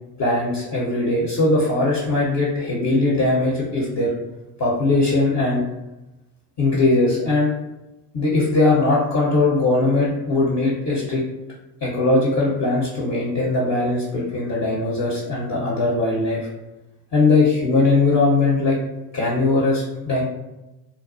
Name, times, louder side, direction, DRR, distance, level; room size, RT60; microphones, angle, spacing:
voice 1, 0.2-4.1 4.6-5.6 6.6-7.5 8.1-11.2 11.8-16.5 17.1-18.8 19.1-20.2, left 2 dB, 35° left, -5 dB, 0.8 m, -20 dB
2.4 x 2.1 x 2.4 m, 0.99 s
hypercardioid pair, 80°, 48 cm